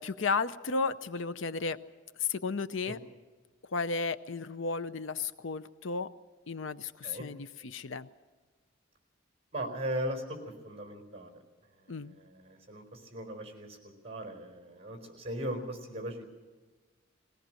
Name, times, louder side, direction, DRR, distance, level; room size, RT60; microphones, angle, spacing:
voice 1, 0.0-1.8 2.2-3.0 3.7-6.1 6.5-8.1 11.9-12.1, left 4 dB, 70° left, 13 dB, 0.6 m, -33 dB
voice 2, 9.5-10.4 10.6-11.3 11.8-13.8 14.0-16.2, right 1 dB, 30° right, 5 dB, 4.3 m, -38 dB
21.0 x 17.5 x 7.7 m, 1.3 s
head